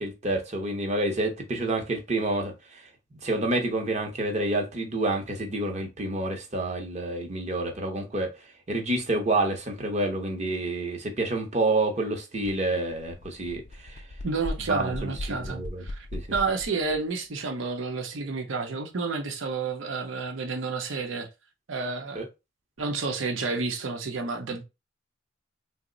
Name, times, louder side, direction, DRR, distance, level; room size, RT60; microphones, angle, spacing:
voice 1, 0.0-2.8 3.2-8.3 8.7-14.0 14.7-15.8 16.1-16.2 22.1-22.2, right 2 dB, 35° right, 0.7 m, -28 dB
sound 1, 12.4-12.6 12.9-17.0, left 1 dB, 40° left, 0.4 m, -38 dB
voice 2, 14.2-16.1 16.3-21.3 21.7-22.2 22.8-24.6, right 4 dB, 80° right, 0.7 m, -30 dB
3.0 x 2.0 x 3.7 m
head